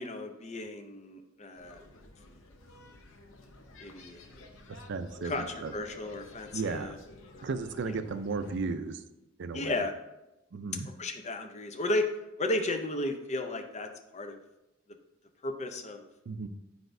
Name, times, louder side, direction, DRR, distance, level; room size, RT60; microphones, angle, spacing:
voice 1, 0.0-1.8 3.8-4.3 5.2-7.0 7.3-7.5 9.5-9.9 11.0-12.1 12.4-14.4 15.4-16.1, left 2 dB, 35° left, 5 dB, 0.6 m, -34 dB
sound 1, 1.5-8.6, left 2 dB, 70° left, 0.7 m, -53 dB
voice 2, 4.7-5.7 6.5-7.0 7.4-9.0 9.4-9.8 10.5-10.9 16.3-16.5, right 4 dB, 60° right, 10 dB, 0.4 m, -35 dB
8.0 x 5.0 x 2.6 m, 0.93 s
head